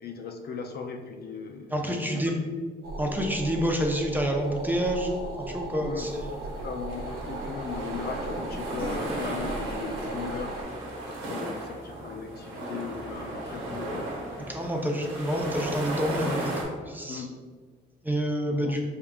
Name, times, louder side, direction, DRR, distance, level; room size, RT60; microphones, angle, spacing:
voice 1, 0.0-2.2 5.8-6.1 6.6-10.5 11.1-14.1 17.1-17.4 18.5-18.7, left 5 dB, 55° left, 4 dB, 0.4 m, -38 dB
voice 2, 1.7-2.4 3.0-5.1 5.4-6.3 14.5-16.6 16.9-17.2 18.0-18.8, equal, 10° right, 1 dB, 0.6 m, -28 dB
sound 1, 2.8-10.6, right 2 dB, 55° right, 0.7 m, -38 dB
sound 2, 5.9-16.6, right 1 dB, 90° right, 1.0 m, -35 dB
4.7 x 3.6 x 2.3 m, 1.5 s
cardioid pair, 90°, 20 cm